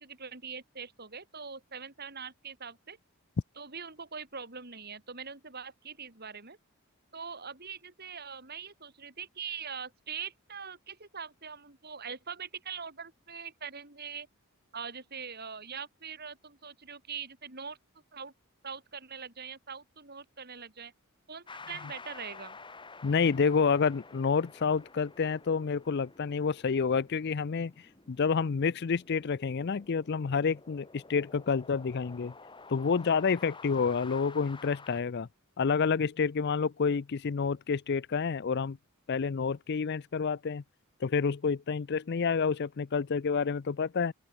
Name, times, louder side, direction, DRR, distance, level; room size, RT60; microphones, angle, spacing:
voice 1, 0.0-3.0 3.6-6.6 7.1-14.3 14.7-17.8 18.1-18.3 18.6-20.9 21.3-22.6, right 6 dB, 45° right, 4.5 m, -42 dB
sound 1, 21.5-35.0, left 4 dB, 20° left, 2.6 m, -51 dB
voice 2, 23.0-27.7 28.1-32.3 32.7-35.3 35.6-38.8 39.1-40.6 41.0-44.1, left 5 dB, 50° left, 0.4 m, -29 dB
open air
head